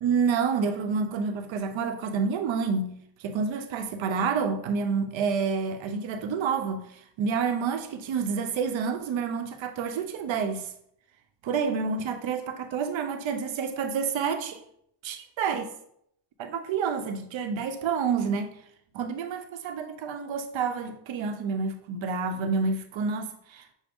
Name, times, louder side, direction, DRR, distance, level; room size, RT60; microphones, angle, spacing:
voice 1, 0.0-10.7 11.4-14.6 15.0-15.7 16.4-18.5 18.9-23.6, right 5 dB, 65° right, 0.7 m, -29 dB
6.0 x 2.1 x 3.5 m
supercardioid pair, 50°, 50 cm